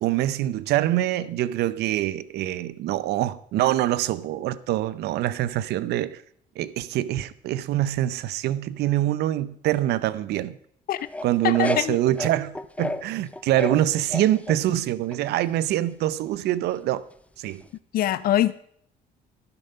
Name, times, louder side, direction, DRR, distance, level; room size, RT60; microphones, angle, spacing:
voice 1, 0.0-6.2 6.6-10.6 11.2-17.0 17.4-17.6, right 13 dB, 75° right, 0.6 m, -25 dB
sound 1, 11.0-13.0 13.3-14.6 15.1-15.6 17.6-17.7, left 2 dB, 10° left, 0.5 m, -31 dB
voice 2, 11.4-12.0 17.9-18.5, left 12 dB, 60° left, 0.5 m, -23 dB
15.0 x 6.9 x 5.6 m
cardioid pair, 110°, 17 cm